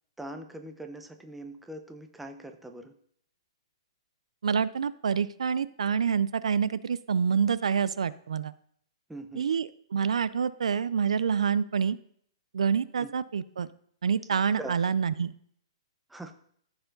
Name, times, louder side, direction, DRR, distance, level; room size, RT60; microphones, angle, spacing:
voice 1, 0.2-2.9 9.1-9.5 13.0-13.1 14.6-14.8 16.1-16.3, right 1 dB, 5° right, 5 dB, 0.7 m, -42 dB
voice 2, 4.4-8.5 9.4-12.0 12.5-13.7 14.0-15.3, right 6 dB, 90° right, 16 dB, 0.4 m, -27 dB
14.0 x 4.8 x 3.9 m, 0.63 s
hypercardioid pair, 155°, 3 cm